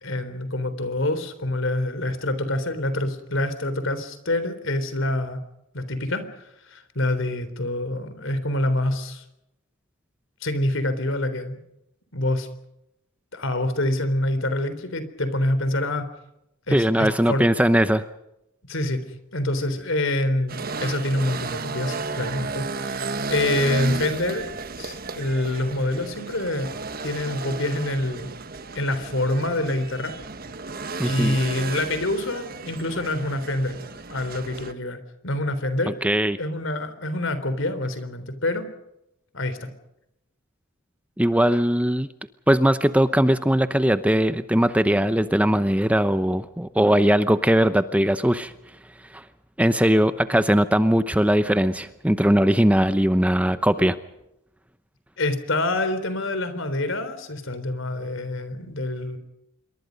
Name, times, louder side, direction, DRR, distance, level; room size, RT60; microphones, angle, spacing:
voice 1, 0.0-5.4 5.7-9.2 10.4-11.6 12.1-12.5 13.3-16.1 16.7-17.4 18.7-24.5 24.8-26.7 27.0-28.3 28.7-30.2 31.0-33.8 34.1-36.0 36.4-38.7 39.3-39.7 55.2-59.2, left 1 dB, 65° left, 11 dB, 3.7 m, -26 dB
voice 2, 16.7-18.0 31.0-31.4 36.0-36.4 41.2-42.1 42.5-48.5 49.1-49.2 49.6-54.0, equal, 5° right, 11 dB, 0.8 m, -20 dB
sound 1, 20.5-34.7, right 4 dB, 45° right, 1.5 m, -33 dB
27.5 x 23.0 x 5.3 m, 0.85 s
head